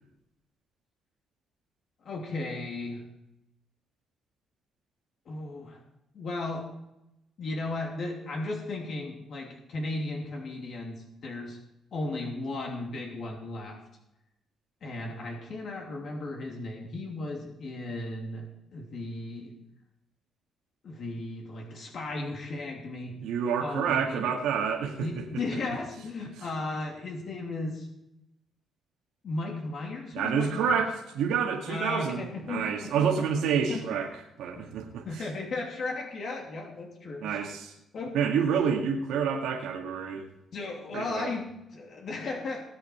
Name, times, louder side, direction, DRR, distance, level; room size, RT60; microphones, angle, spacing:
voice 1, 2.0-3.0 5.3-5.8 6.1-6.7 7.4-11.6 11.9-13.8 14.8-18.4 18.7-19.5 20.8-23.2 23.6-24.3 25.0-27.9 29.2-30.7 31.7-33.3 33.7-33.8 34.6-34.7 35.0-37.4 37.9-38.2 40.5-42.6, left 2 dB, 60° left, 0 dB, 3.0 m, -35 dB
voice 2, 23.2-25.2 25.5-25.6 30.1-34.1 34.4-35.3 37.2-37.7 38.1-40.3 40.9-41.3, right 7 dB, 85° right, 0 dB, 2.0 m, -28 dB
19.5 x 8.1 x 4.6 m, 0.87 s
cardioid pair, 90°, 0 cm